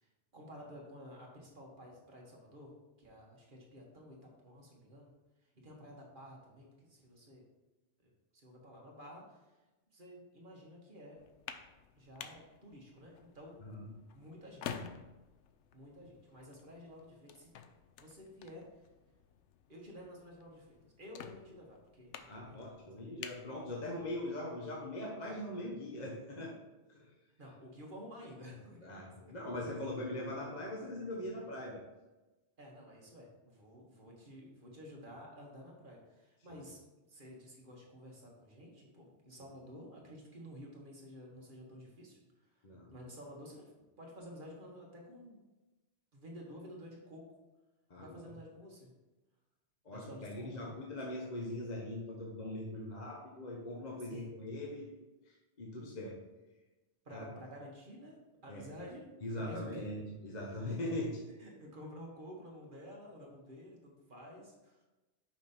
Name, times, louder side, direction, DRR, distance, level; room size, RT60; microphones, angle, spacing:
voice 1, 0.0-2.7 3.0-5.1 5.5-7.4 8.0-9.4 9.9-11.2 12.0-13.6 14.1-14.8 15.7-17.5 18.0-18.6 19.7-22.9 27.4-29.1 32.6-36.8 37.1-42.2 42.9-43.7 44.0-45.4 46.1-47.3 48.0-48.9 49.9-50.9 54.0-54.3 57.0-59.9 61.4-64.8, equal, 45° right, -2 dB, 1.5 m, -52 dB
sound 1, 11.2-24.3, left 7 dB, 85° left, 0.9 m, -51 dB
voice 2, 22.2-26.5 26.9-27.1 28.8-31.8 36.5-36.6 42.6-42.9 47.9-48.2 49.8-54.9 55.3-56.2 57.1-57.3 58.5-58.6 59.2-61.2, left 1 dB, 40° left, -2 dB, 1.0 m, -41 dB
5.8 x 5.1 x 4.3 m, 1.1 s
omnidirectional pair, 1.2 m